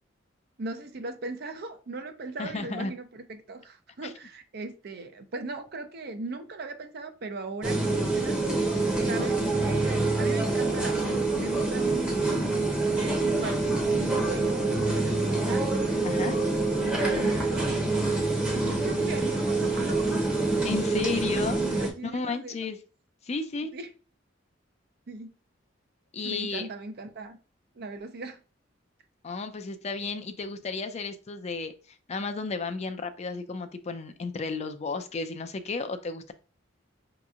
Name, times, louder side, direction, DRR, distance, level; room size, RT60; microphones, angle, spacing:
voice 1, 0.6-8.4 9.1-13.6 13.9-15.7 16.1-20.2 21.8-22.6 23.7-23.9 25.1-25.3 26.2-27.4 27.7-28.4, right 3 dB, 55° right, 0.6 m, -38 dB
voice 2, 2.4-2.9 4.0-4.1 16.0-16.4 20.6-22.8 23.3-23.7 26.1-26.7 29.2-31.7 32.1-36.3, left 4 dB, 35° left, 0.4 m, -33 dB
sound 1, 7.6-21.9, right 2 dB, 5° right, 0.8 m, -26 dB
5.1 x 2.9 x 2.4 m
head